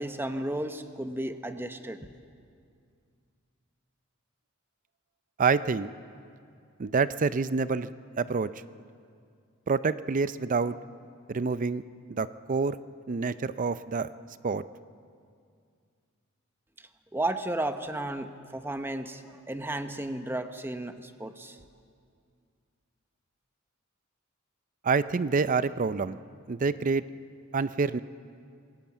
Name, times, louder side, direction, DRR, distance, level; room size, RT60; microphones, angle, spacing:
voice 1, 0.0-2.0 17.1-19.2 19.5-21.6, right 1 dB, 10° right, 8 dB, 0.9 m, -33 dB
voice 2, 5.4-5.9 6.8-7.9 8.2-8.5 9.7-10.8 11.3-11.8 12.2-12.8 13.1-14.1 14.4-14.6 24.8-26.2 26.5-27.0 27.5-28.0, right 4 dB, 40° right, 15 dB, 0.5 m, -27 dB
26.5 x 17.5 x 7.3 m, 2.3 s
head